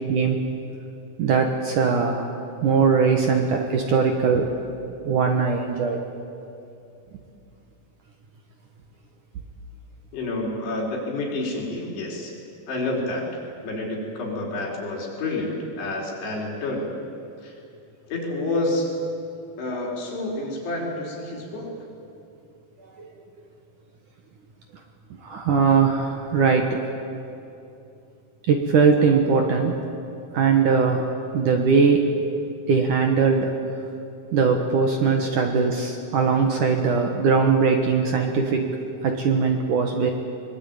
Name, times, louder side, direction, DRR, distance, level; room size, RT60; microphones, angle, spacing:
voice 1, 0.1-0.4 1.2-2.3 2.6-4.5 5.0-6.0 23.0-23.1 25.2-26.8 28.5-29.8 30.3-31.1 31.3-32.1 32.7-33.5 34.3-38.7 39.0-40.1, right 5 dB, 60° right, 3 dB, 2.4 m, -20 dB
voice 2, 10.1-12.3 12.7-13.3 13.6-16.9 17.4-17.5 18.1-19.0 19.6-21.7, left 2 dB, 70° left, -2 dB, 6.6 m, -29 dB
23.5 x 22.5 x 9.1 m, 2.6 s
omnidirectional pair, 5.0 m